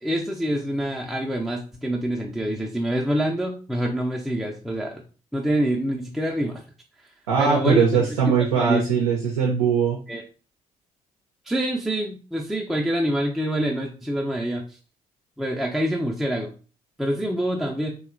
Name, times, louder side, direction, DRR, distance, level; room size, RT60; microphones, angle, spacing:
voice 1, 0.0-5.0 5.3-6.6 7.4-8.0 8.6-8.8 10.1-10.2 11.5-14.6 15.4-16.5 17.0-17.9, right 1 dB, ahead, -1 dB, 0.4 m, -26 dB
voice 2, 7.3-10.0, right 6 dB, 90° right, -1 dB, 0.4 m, -21 dB
2.7 x 2.3 x 2.4 m, 0.36 s
hypercardioid pair, 50°, 17 cm